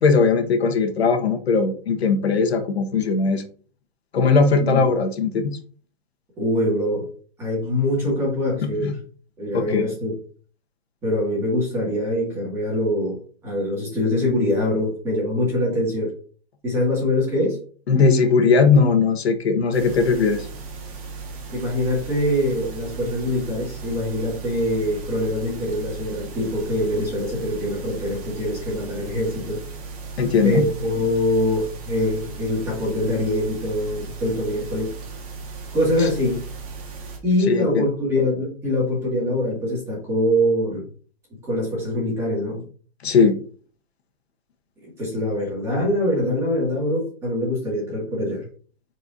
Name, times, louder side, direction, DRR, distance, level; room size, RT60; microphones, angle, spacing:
voice 1, 0.0-3.4 4.1-5.6 8.8-8.9 9.5-9.9 17.9-20.5 30.2-30.6 36.0-36.1 37.5-37.8 43.0-43.4, left 4 dB, 80° left, 5 dB, 1.4 m, -19 dB
voice 2, 4.6-4.9 6.4-7.1 7.4-8.9 9.4-10.1 11.0-13.2 13.4-16.1 16.6-17.6 21.5-29.6 30.4-34.9 35.7-36.4 37.2-40.8 41.5-42.7 44.8-48.4, left 1 dB, 10° right, -4 dB, 2.2 m, -23 dB
sound 1, 19.7-37.2, right 4 dB, 35° right, 1.6 m, -36 dB
9.8 x 4.7 x 2.7 m, 0.43 s
hypercardioid pair, 175°, 31 cm